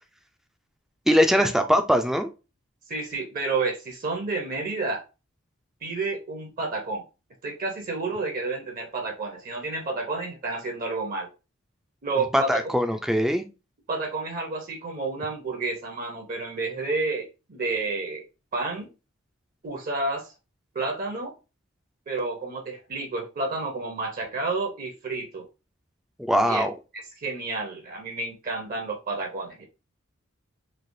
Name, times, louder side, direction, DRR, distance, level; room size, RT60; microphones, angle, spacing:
voice 1, 1.1-2.3 12.3-13.4 26.2-26.7, equal, ahead, 7 dB, 0.4 m, -21 dB
voice 2, 2.9-5.0 5.8-7.0 7.4-11.3 12.0-12.7 13.9-18.2 18.5-18.9 19.6-20.3 20.7-21.3 22.1-25.4 26.5-26.6 27.2-29.7, right 3 dB, 45° right, 3 dB, 0.7 m, -30 dB
3.2 x 2.8 x 2.6 m, 0.30 s
head